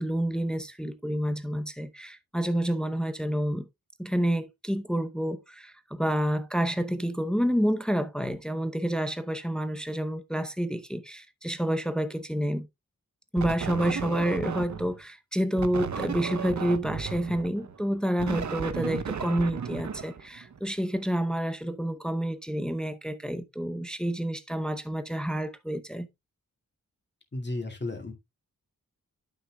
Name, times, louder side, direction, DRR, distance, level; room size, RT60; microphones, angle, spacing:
voice 1, 0.0-3.7 4.0-12.7 13.3-26.1, equal, ahead, 0.7 m, -29 dB
sound 1, 13.4-15.0 15.6-20.7, right 6 dB, 60° right, 0.8 m, -34 dB
voice 2, 27.3-28.1, left 2 dB, 30° left, 2.3 m, -33 dB
11.5 x 6.3 x 2.3 m
wide cardioid pair, 95°, 33 cm